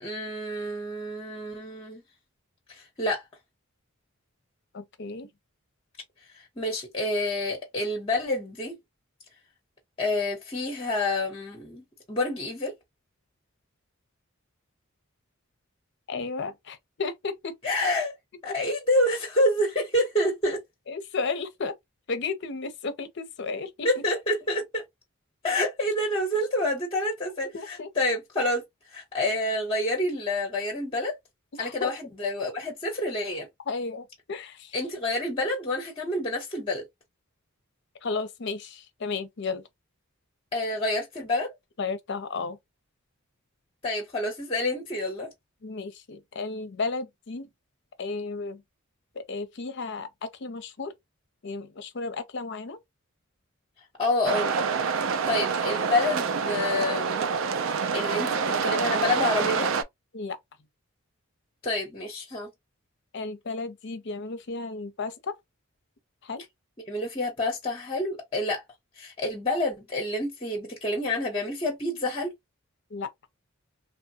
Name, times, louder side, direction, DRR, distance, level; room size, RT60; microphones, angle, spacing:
voice 1, 0.0-2.0 2.7-3.2 6.6-8.8 10.0-12.7 17.6-18.1 18.4-20.6 23.8-24.8 25.4-28.6 28.9-31.2 31.6-33.5 34.7-36.8 40.5-41.5 43.8-45.3 54.0-54.6 55.3-57.2 57.9-59.7 61.6-62.5 66.9-68.6 69.0-72.3, left 1 dB, 25° left, 0.8 m, -28 dB
voice 2, 4.7-5.3 16.1-17.5 20.9-21.7 22.1-23.9 27.5-27.9 31.6-31.9 33.7-34.8 38.0-39.6 41.8-42.6 45.6-47.5 48.0-48.6 49.1-50.9 51.4-52.8 60.1-60.4 63.1-65.4 66.2-66.4 72.9-73.1, left 4 dB, 55° left, 0.6 m, -33 dB
sound 1, 54.3-59.8, right 5 dB, 65° right, 0.4 m, -27 dB
3.0 x 2.2 x 2.7 m
head